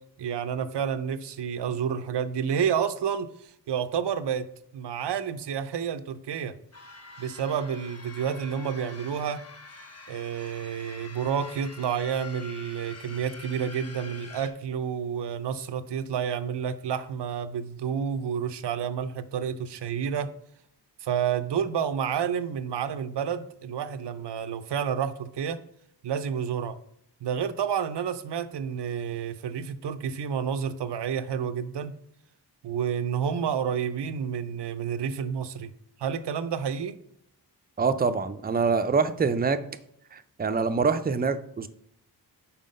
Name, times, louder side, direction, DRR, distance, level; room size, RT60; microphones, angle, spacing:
voice 1, 0.2-4.5 4.7-6.5 7.2-9.4 10.1-20.3 21.0-25.6 26.0-26.8 27.2-31.9 32.6-35.7 36.0-37.0, right 7 dB, 75° right, 12 dB, 0.6 m, -30 dB
sound 1, 6.7-14.5, left 3 dB, 35° left, 1.1 m, -46 dB
voice 2, 37.8-39.6 40.1-41.7, right 5 dB, 25° right, 11 dB, 0.4 m, -25 dB
5.7 x 4.3 x 5.2 m, 0.72 s
wide cardioid pair, 80°, 42 cm